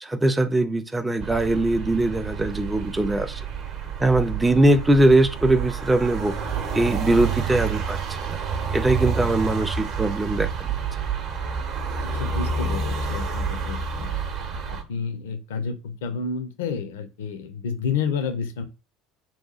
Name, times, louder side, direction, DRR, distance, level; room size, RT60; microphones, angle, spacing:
voice 1, 0.0-3.4 4.0-6.3 6.7-8.0 8.3-8.4 8.7-10.7, right 1 dB, 10° right, 0.3 m, -21 dB
sound 1, 1.2-14.8, right 6 dB, 45° right, 0.7 m, -29 dB
voice 2, 12.0-14.2 14.7-18.6, left 5 dB, 70° left, 0.4 m, -30 dB
2.8 x 2.3 x 3.9 m
figure-of-eight pair, 65°, 0 cm